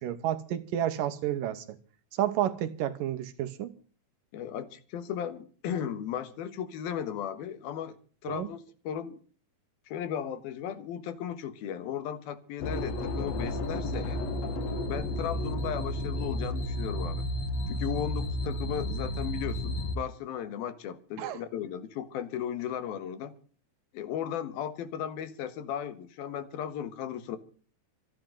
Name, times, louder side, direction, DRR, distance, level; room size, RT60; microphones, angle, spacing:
voice 1, 0.0-1.8 2.2-3.7 8.3-8.5 21.2-21.4, right 11 dB, 75° right, 2.6 m, -30 dB
voice 2, 4.3-8.0 8.2-9.2 9.9-14.2 14.8-17.3 17.7-23.3 23.9-27.4, left 9 dB, 80° left, 3.2 m, -36 dB
sound 1, 12.6-20.0, left 1 dB, 55° left, 2.3 m, -32 dB
26.0 x 10.5 x 3.9 m
omnidirectional pair, 4.3 m